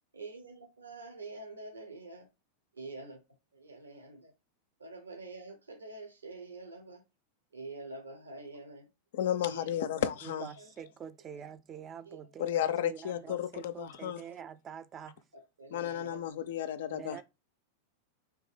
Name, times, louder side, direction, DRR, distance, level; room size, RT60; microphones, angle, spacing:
voice 1, 0.1-2.2 2.7-3.2 3.5-4.3 4.8-7.0 7.5-8.9 9.4-9.6 10.6-10.7 12.1-12.2 12.5-12.6 15.6-16.2, right 3 dB, 75° right, 0.7 m, -46 dB
voice 2, 9.1-10.5 12.4-14.2 15.7-17.2, left 10 dB, 55° left, 0.4 m, -33 dB
voice 3, 10.2-15.2 16.9-17.2, right 8 dB, 25° right, 0.4 m, -46 dB
3.4 x 2.6 x 3.3 m
figure-of-eight pair, 90°, 0 cm